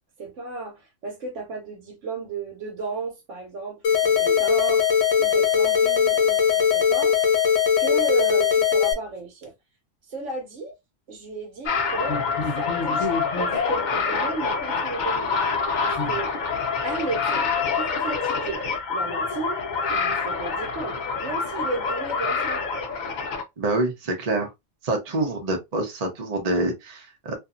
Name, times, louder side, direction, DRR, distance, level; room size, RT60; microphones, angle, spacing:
voice 1, 0.2-4.9 5.2-7.2 7.8-9.5 10.1-10.7 11.1-15.4 15.8-16.3 16.8-17.5 17.7-18.6 18.9-19.6 19.9-22.6, right 3 dB, 75° right, 1.2 m, -33 dB
sound 1, 3.8-8.9, left 8 dB, 75° left, 1.0 m, -20 dB
sound 2, 11.7-23.4, left 5 dB, 50° left, 0.6 m, -26 dB
voice 2, 23.6-24.5 24.8-27.3, right 2 dB, 35° right, 0.8 m, -26 dB
2.7 x 2.5 x 2.4 m
omnidirectional pair, 1.3 m